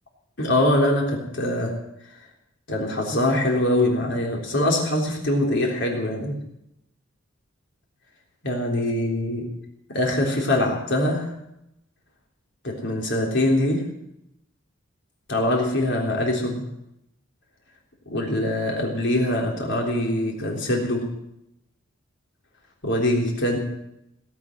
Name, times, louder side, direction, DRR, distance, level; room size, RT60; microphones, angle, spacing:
voice 1, 0.4-1.7 2.7-6.4 8.4-9.4 9.9-11.3 12.6-13.8 15.3-16.7 18.1-21.1 22.8-23.6, left 1 dB, 60° left, -1 dB, 3.6 m, -23 dB
18.0 x 8.3 x 9.2 m, 0.83 s
head